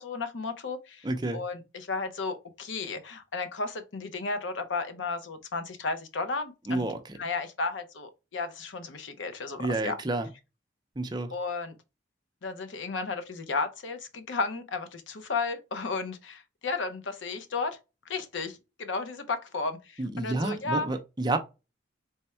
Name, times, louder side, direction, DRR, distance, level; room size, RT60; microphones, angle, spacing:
voice 1, 0.0-1.1 1.3-6.8 7.2-10.0 11.3-11.8 12.4-17.8 18.1-20.9, left 3 dB, 80° left, 0.7 m, -33 dB
voice 2, 1.0-1.4 6.7-7.0 9.6-10.3 11.0-11.3 20.0-21.4, right 2 dB, 20° right, 0.5 m, -29 dB
3.5 x 2.2 x 4.2 m
head